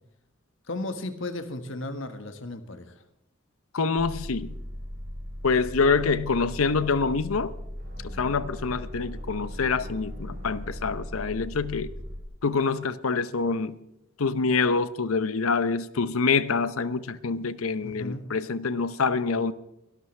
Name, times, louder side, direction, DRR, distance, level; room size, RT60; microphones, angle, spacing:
voice 1, 0.7-2.9 17.8-18.2, left 2 dB, 65° left, 1.5 m, -35 dB
voice 2, 3.7-4.6 5.4-7.5 8.0-11.9 12.4-13.8 14.2-19.5, left 4 dB, 85° left, 0.7 m, -26 dB
sound 1, 4.0-12.2, equal, 20° right, 2.3 m, -38 dB
sound 2, 7.8-11.6, left 1 dB, 45° right, 3.5 m, -48 dB
23.5 x 12.0 x 3.3 m
head